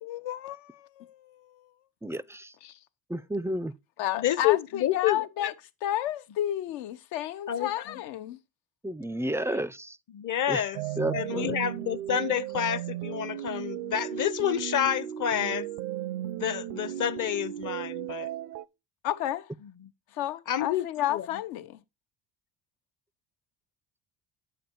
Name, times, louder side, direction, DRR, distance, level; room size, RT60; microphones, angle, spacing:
voice 1, 0.0-1.7 2.6-2.8 4.0-5.5 5.8-8.4 19.0-19.5 20.1-21.8, left 12 dB, 80° left, 1.0 m, -32 dB
voice 2, 2.0-2.5 3.1-3.7 8.8-10.0 10.5-10.6 11.0-11.6, right 1 dB, 5° right, 0.4 m, -31 dB
voice 3, 4.2-5.2 7.5-7.7 10.1-10.8 11.1-15.7 16.4-18.3 20.5-21.3, left 10 dB, 45° left, 0.8 m, -28 dB
sound 1, 10.7-18.6, right 13 dB, 80° right, 0.7 m, -35 dB
8.8 x 7.1 x 4.5 m
supercardioid pair, 75°, 42 cm